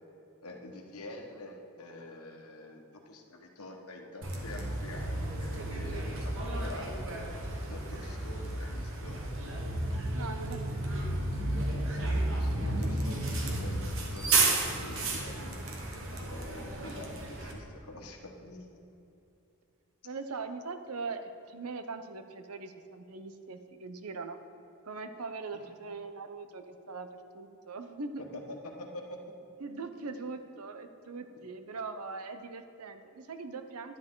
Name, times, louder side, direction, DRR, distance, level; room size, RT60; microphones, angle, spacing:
voice 1, 0.4-7.3 7.7-9.2 12.0-15.7 16.3-18.8 25.5-25.7 28.2-29.2, left 1 dB, 90° left, 2 dB, 1.3 m, -46 dB
Bus, 4.2-17.5, right 2 dB, 60° right, 1.3 m, -32 dB
voice 2, 6.4-6.7 10.1-11.0 16.8-17.0 20.0-24.4 24.9-28.2 29.6-34.0, right 4 dB, 85° right, 9 dB, 0.7 m, -41 dB
11.0 x 10.0 x 3.8 m, 2.9 s
head